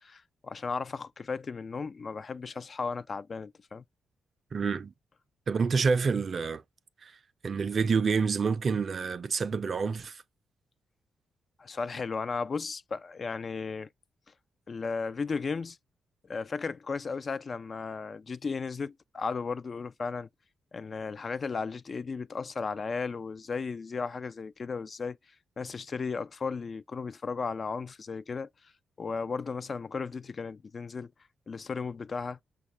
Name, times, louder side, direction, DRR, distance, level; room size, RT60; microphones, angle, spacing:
voice 1, 0.0-3.8 11.6-13.9 14.7-15.8 16.2-20.3 20.7-25.2 25.6-28.5 29.0-31.1 31.5-32.4, left 4 dB, 45° left, 0.3 m, -35 dB
voice 2, 4.5-4.9 5.5-6.6 7.0-7.1 7.4-10.2, right 5 dB, 50° right, 0.4 m, -28 dB
5.7 x 2.3 x 2.9 m
cardioid pair, 65°, 0 cm